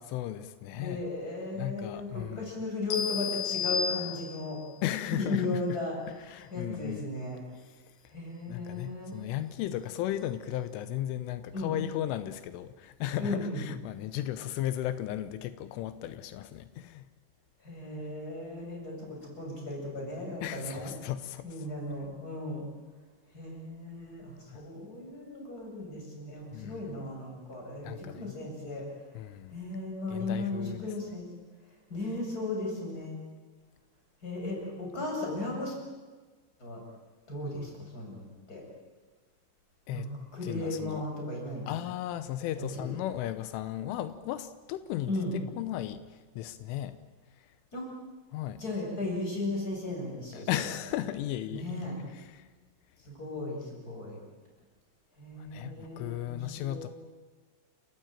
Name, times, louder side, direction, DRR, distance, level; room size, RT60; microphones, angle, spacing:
voice 1, 0.1-1.0 1.6-2.6 4.8-5.6 6.1-7.0 7.6-7.9 8.5-17.1 20.4-21.6 24.5-24.6 26.5-26.9 27.8-28.4 29.1-29.6 30.1-30.9 39.9-40.1 40.4-41.0 41.7-47.0 47.4-47.5 48.3-48.6 50.3-52.5 55.4-56.9, left 12 dB, 85° left, 12 dB, 3.5 m, -36 dB
voice 2, 0.7-4.6 5.1-7.4 8.1-9.1 11.5-11.7 13.2-13.6 17.6-20.9 21.4-22.6 23.3-28.8 29.5-31.3 31.9-33.2 34.2-35.7 36.6-36.8 37.3-38.6 39.9-41.7 42.6-43.0 45.1-45.3 47.7-47.9 48.6-50.5 51.5-51.9 53.0-54.2 55.2-56.9, left 2 dB, 20° left, -1 dB, 8.1 m, -36 dB
sound 1, 2.9-4.6, left 6 dB, 50° left, 3.5 m, -32 dB
29.5 x 17.5 x 9.0 m, 1.4 s
omnidirectional pair, 5.5 m